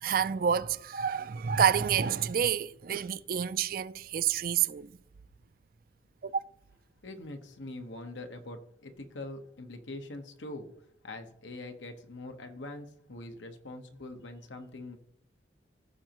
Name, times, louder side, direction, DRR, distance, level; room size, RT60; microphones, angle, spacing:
voice 1, 0.0-4.9 6.2-6.3, right 8 dB, 50° right, 0.4 m, -28 dB
voice 2, 7.0-10.7 11.0-15.0, left 2 dB, 85° left, 1.2 m, -43 dB
15.5 x 6.3 x 3.0 m
head